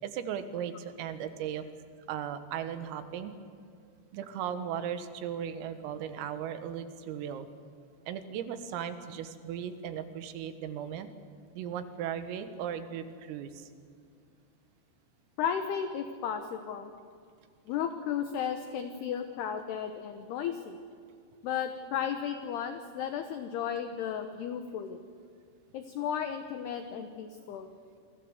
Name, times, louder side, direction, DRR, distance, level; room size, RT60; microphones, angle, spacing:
voice 1, 0.0-1.7 2.1-3.3 4.1-7.5 8.1-11.1 11.6-13.7, right 9 dB, 85° right, 9 dB, 4.1 m, -37 dB
voice 2, 15.4-16.9 17.7-20.8 21.4-25.0 25.7-27.7, left 8 dB, 75° left, 7 dB, 2.6 m, -34 dB
29.0 x 21.5 x 8.1 m, 2.3 s
omnidirectional pair, 5.9 m